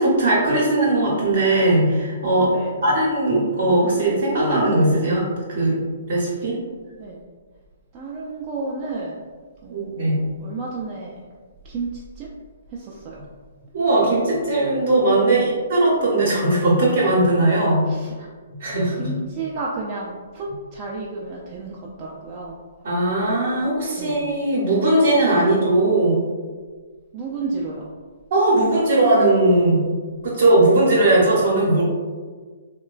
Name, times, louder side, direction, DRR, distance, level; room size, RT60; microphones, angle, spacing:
voice 1, 0.0-2.5 2.8-5.2 5.5-5.8 6.1-6.6 9.7-10.2 13.7-17.9 18.6-19.1 22.8-26.2 28.3-29.8 30.2-31.8, right 2 dB, 60° right, -5 dB, 0.7 m, -19 dB
voice 2, 7.9-9.2 9.6-11.2 11.6-12.3 12.7-13.3 15.2-15.6 17.8-18.3 18.9-22.6 24.0-24.3 25.3-25.5 27.1-27.9, right 3 dB, 30° right, -4 dB, 0.3 m, -32 dB
2.9 x 2.2 x 2.3 m, 1.5 s
figure-of-eight pair, 125°, 0 cm